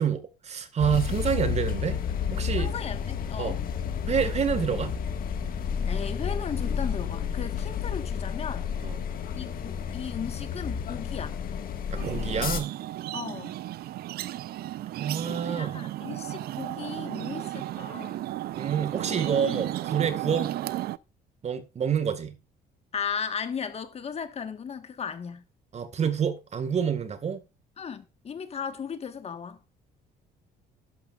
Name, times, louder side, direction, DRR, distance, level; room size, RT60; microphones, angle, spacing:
voice 1, 0.0-2.0 2.3-2.7 3.4-3.6 4.1-5.0 8.8-9.0 11.9-12.8 15.0-15.8 18.5-20.6 21.4-22.3 25.7-27.4, right 7 dB, 40° right, 1.8 m, -28 dB
sound 1, 0.8-12.6, left 7 dB, 60° left, 1.8 m, -31 dB
voice 2, 2.6-3.6 5.9-8.7 9.3-11.4 13.1-13.5 15.3-18.2 19.3-19.6 20.2-20.4 22.9-25.4 27.8-29.6, left 6 dB, 40° left, 1.5 m, -36 dB
sound 2, 12.0-21.0, right 14 dB, 65° right, 0.6 m, -34 dB
12.0 x 11.5 x 2.5 m
cardioid pair, 110°, 17 cm